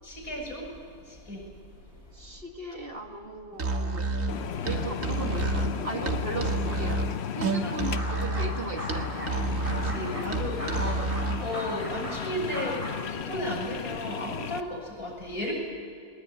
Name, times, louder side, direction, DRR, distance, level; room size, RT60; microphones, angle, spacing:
voice 1, 0.0-1.5 1.9-2.4 4.6-4.9 7.6-7.9 9.6-10.9 11.4-15.5, equal, 75° left, -2 dB, 7.4 m, -35 dB
voice 2, 2.1-4.1 4.6-7.1 7.3-9.3 10.7-11.2, right 2 dB, 40° right, 3 dB, 1.9 m, -37 dB
Musical instrument, 3.5-11.5, right 3 dB, 60° right, 2.0 m, -30 dB
sound 1, 4.3-14.6, left 8 dB, 55° left, 0.9 m, -35 dB
sound 2, 7.9-8.5 8.8-9.3 9.6-13.0, equal, 20° right, 7.9 m, -38 dB
21.0 x 20.5 x 9.3 m, 2.4 s
omnidirectional pair, 1.6 m